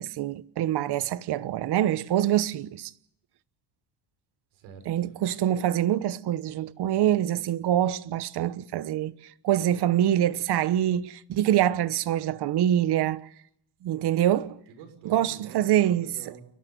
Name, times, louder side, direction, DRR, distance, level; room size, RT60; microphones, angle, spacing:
voice 1, 0.0-2.9 4.9-9.1 9.4-13.3 13.8-14.6 15.0-16.1, right 12 dB, 60° right, 1.1 m, -25 dB
voice 2, 4.5-5.1 14.7-16.4, right 7 dB, 85° right, 6.2 m, -47 dB
29.5 x 12.0 x 9.3 m
cardioid pair, 100°, 45 cm